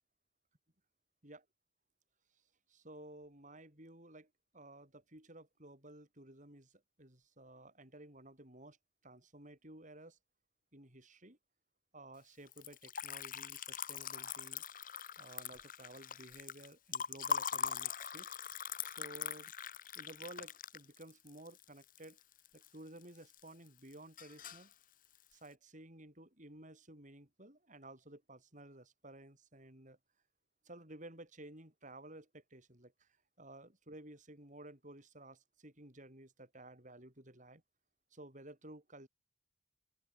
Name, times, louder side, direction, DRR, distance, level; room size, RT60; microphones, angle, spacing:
voice 1, 2.7-8.8 9.0-10.2 10.7-11.4 11.9-14.6 15.2-18.3 18.8-19.5 19.9-22.2 22.5-24.7 25.3-30.0 30.6-33.1 33.4-37.6 38.1-39.1, right 1 dB, 40° right, 8.0 m, -54 dB
Liquid, 12.5-22.7 23.0-23.7 23.9-24.7, left 7 dB, 45° left, 1.7 m, -42 dB
open air
head